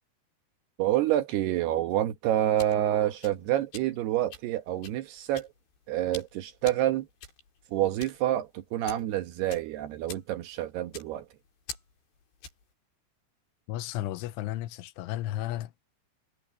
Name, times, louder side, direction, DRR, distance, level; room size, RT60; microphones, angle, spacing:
voice 1, 0.8-5.5 5.9-7.1 7.7-11.3, right 13 dB, 70° right, 2.8 m, -28 dB
sound 1, 2.3-12.7, left 5 dB, 65° left, 8.0 m, -48 dB
voice 2, 13.7-15.7, left 14 dB, 90° left, 3.3 m, -33 dB
omnidirectional pair, 5.5 m